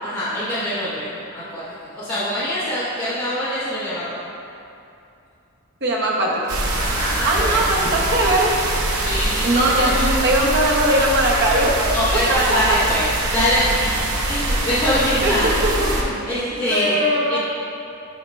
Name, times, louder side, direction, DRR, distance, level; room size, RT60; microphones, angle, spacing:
voice 1, 0.0-1.6 1.9-4.2 6.7-7.6 8.9-10.0 11.9-13.0 13.3-17.0 17.3-17.4, equal, 20° left, -15 dB, 1.4 m, -24 dB
voice 2, 5.8-6.6 7.2-8.5 9.4-12.0 12.3-12.6 15.2-15.7 16.7-17.4, right 1 dB, 50° right, -3 dB, 0.9 m, -20 dB
sound 1, 6.5-16.0, right 1 dB, 75° right, 0.8 m, -23 dB
7.8 x 2.9 x 5.3 m, 2.7 s
head